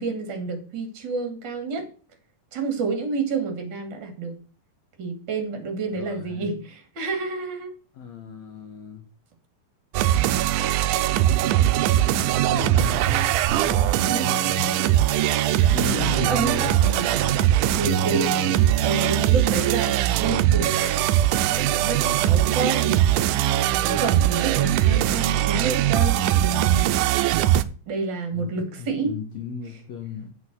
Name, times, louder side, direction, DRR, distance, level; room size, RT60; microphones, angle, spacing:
voice 1, 0.0-1.9 2.5-4.3 5.0-7.7 14.0-14.3 15.5-16.6 17.7-18.3 18.8-21.0 21.4-23.0 23.8-26.9 27.9-29.1, right 4 dB, 35° right, 5 dB, 2.7 m, -29 dB
voice 2, 5.9-6.5 7.9-9.1 11.9-13.4 13.6-18.8 24.7-25.3 28.3-28.5 28.8-30.3, left 7 dB, 60° left, 4 dB, 2.2 m, -36 dB
sound 1, 9.9-27.6, right 12 dB, 80° right, 1.9 m, -21 dB
8.2 x 6.5 x 6.3 m, 0.39 s
omnidirectional pair, 4.1 m